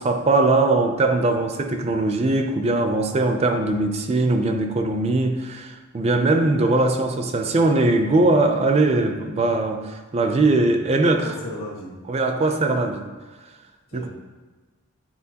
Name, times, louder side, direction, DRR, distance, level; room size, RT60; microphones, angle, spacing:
voice 1, 0.0-11.3 12.1-13.1 13.9-14.1, right 2 dB, 30° right, 5 dB, 0.4 m, -20 dB
voice 2, 11.0-11.9 13.9-14.1, equal, 65° left, -2 dB, 1.4 m, -35 dB
8.6 x 4.2 x 2.8 m, 1.3 s
head